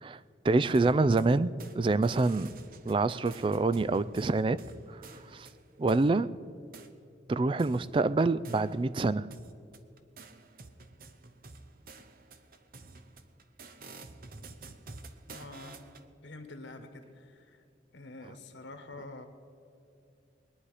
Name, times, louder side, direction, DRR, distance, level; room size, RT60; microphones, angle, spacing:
voice 1, 0.4-2.6 2.9-4.6 4.9-5.0 5.3-5.5 5.8-6.3 7.3-9.3, right 3 dB, 30° right, 16 dB, 0.3 m, -26 dB
sound 1, 0.7-1.8 2.0-6.1 6.7-6.9 7.6-9.0 9.3-16.1, right 3 dB, 50° right, 0.8 m, -50 dB
voice 2, 15.3-15.8 16.2-17.6 17.9-19.2, left 2 dB, 90° left, 7 dB, 1.5 m, -46 dB
21.5 x 9.8 x 4.9 m, 2.6 s
head